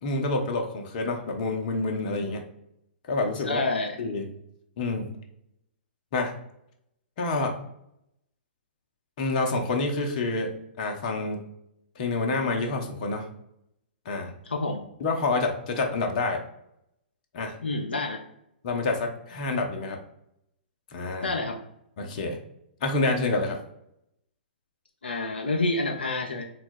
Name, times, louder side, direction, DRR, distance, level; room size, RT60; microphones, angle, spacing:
voice 1, 0.0-2.4 3.1-3.6 4.0-4.3 4.8-5.1 6.1-6.3 7.2-7.5 9.2-11.4 12.0-13.3 14.1-14.3 15.0-16.4 17.3-17.6 18.6-20.0 20.9-21.3 22.0-22.4 22.8-23.6, left 3 dB, 45° left, 3 dB, 0.8 m, -28 dB
voice 2, 3.4-4.0 14.4-14.8 17.6-18.2 21.2-21.6 25.0-26.4, left 2 dB, 75° left, 2 dB, 0.5 m, -28 dB
3.8 x 2.3 x 4.4 m, 0.78 s
figure-of-eight pair, 115°, 6 cm